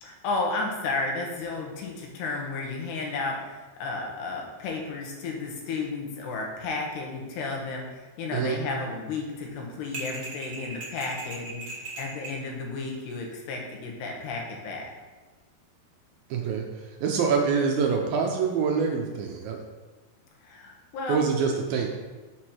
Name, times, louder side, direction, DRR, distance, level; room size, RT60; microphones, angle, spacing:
voice 1, 0.0-14.9 20.4-21.2, left 3 dB, 80° left, 0 dB, 3.3 m, -33 dB
sound 1, 9.9-12.4, right 3 dB, 35° right, 1.7 m, -38 dB
voice 2, 16.3-19.6 21.1-21.9, right 5 dB, 75° right, 1 dB, 2.2 m, -25 dB
7.3 x 6.4 x 4.4 m, 1.3 s
omnidirectional pair, 4.7 m